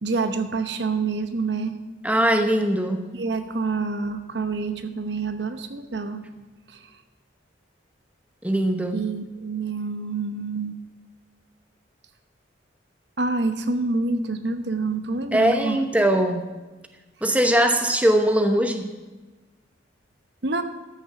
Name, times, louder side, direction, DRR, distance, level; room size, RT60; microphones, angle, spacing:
voice 1, 0.0-1.8 3.1-6.2 6.7-6.8 8.9-10.8 13.2-15.8 20.4-20.6, right 3 dB, 60° right, 8 dB, 0.9 m, -27 dB
voice 2, 2.0-3.1 8.4-9.0 15.3-16.5 17.2-18.9, right 1 dB, 10° right, 5 dB, 0.9 m, -21 dB
13.5 x 7.1 x 7.1 m, 1.2 s
head